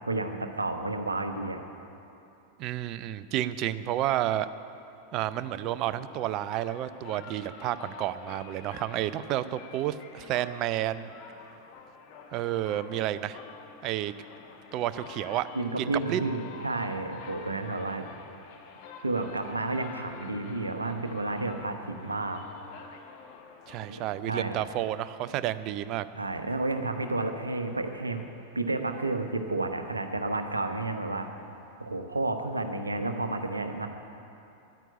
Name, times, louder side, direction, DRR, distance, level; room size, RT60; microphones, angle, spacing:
voice 1, 0.1-1.6 15.5-18.1 19.0-22.4 23.9-24.6 26.1-28.2 28.5-31.3 31.8-33.9, right 2 dB, 80° right, 7 dB, 0.9 m, -31 dB
voice 2, 2.6-4.5 5.1-11.1 12.3-13.4 13.8-14.1 14.7-15.5 15.8-16.3 23.7-26.1, right 13 dB, 40° right, 14 dB, 0.5 m, -30 dB
sound 1, 5.3-24.6, left 6 dB, 45° left, 1.2 m, -48 dB
10.0 x 9.1 x 9.9 m, 2.7 s
figure-of-eight pair, 90°, 0 cm